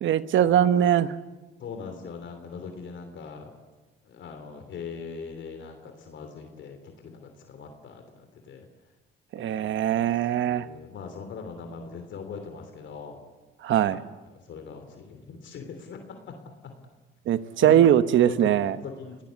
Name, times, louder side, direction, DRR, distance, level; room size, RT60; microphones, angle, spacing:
voice 1, 0.0-1.1 9.3-10.7 13.6-14.0 17.3-18.8, right 10 dB, 75° right, 13 dB, 1.1 m, -21 dB
voice 2, 1.6-3.5 4.0-8.7 9.4-9.7 10.0-10.1 10.4-13.2 13.8-14.0 14.3-16.0 16.3-16.4 16.6-16.7 17.6-17.8 18.2-19.2, left 5 dB, 70° left, 5 dB, 3.2 m, -41 dB
29.0 x 18.5 x 8.3 m, 1.2 s
cardioid pair, 90°, 20 cm